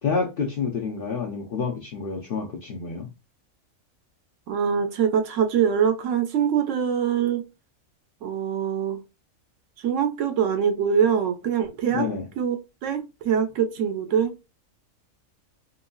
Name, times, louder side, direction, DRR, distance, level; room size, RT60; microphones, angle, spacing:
voice 1, 0.0-3.1 11.9-12.2, left 5 dB, 60° left, 0.6 m, -28 dB
voice 2, 4.5-7.4 8.2-9.0 9.8-12.1 12.4-14.3, right 7 dB, 70° right, 0.9 m, -24 dB
2.9 x 2.6 x 2.3 m
omnidirectional pair, 1.4 m